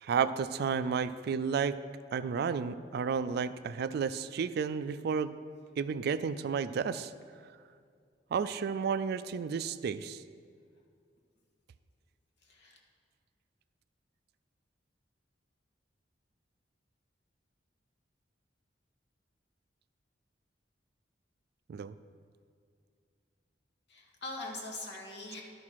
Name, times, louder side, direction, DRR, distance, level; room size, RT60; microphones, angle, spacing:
voice 1, 0.0-1.8 2.1-5.3 5.8-7.1 8.3-10.2 21.7-21.9, right 6 dB, 60° right, 14 dB, 0.3 m, -32 dB
voice 2, 12.4-12.8 23.9-25.4, left 2 dB, 65° left, -1 dB, 1.5 m, -42 dB
12.0 x 5.7 x 4.7 m, 2.2 s
head